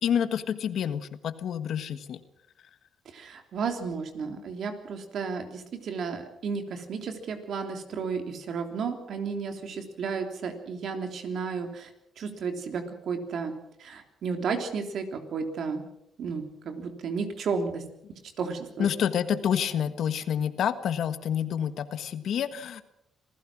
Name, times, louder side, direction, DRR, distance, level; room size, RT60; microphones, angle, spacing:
voice 1, 0.0-2.2 4.3-4.4 18.8-22.8, left 8 dB, 70° left, 12 dB, 1.5 m, -28 dB
voice 2, 3.1-11.9 12.2-13.5 13.8-15.8 16.2-17.8 18.4-18.9, right 5 dB, 65° right, 6 dB, 3.3 m, -33 dB
26.5 x 16.5 x 6.2 m, 0.79 s
cardioid pair, 90°, 0 cm